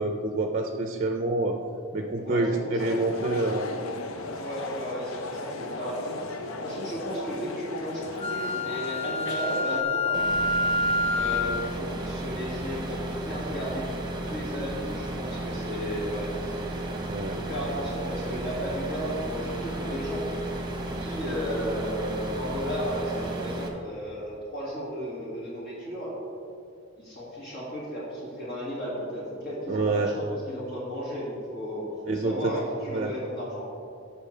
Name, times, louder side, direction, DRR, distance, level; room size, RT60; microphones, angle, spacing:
voice 1, 0.0-1.6 1.9-3.7 17.0-17.4 29.7-30.1 32.1-32.5 32.9-33.1, right 2 dB, 40° right, 4 dB, 0.5 m, -27 dB
voice 2, 2.1-2.9 4.4-6.3 6.6-10.6 11.1-13.9 14.2-16.8 17.4-20.3 20.8-26.2 27.0-33.7, equal, 50° left, -6 dB, 2.1 m, -34 dB
sound 1, 2.8-9.8, left 3 dB, 80° left, 0.6 m, -37 dB
Wind instrument woodwind instrument, 8.2-11.6, left 2 dB, 30° left, 0.4 m, -27 dB
sound 2, 10.1-23.7, right 1 dB, 20° right, 1.0 m, -34 dB
15.0 x 5.6 x 3.3 m, 2.5 s
head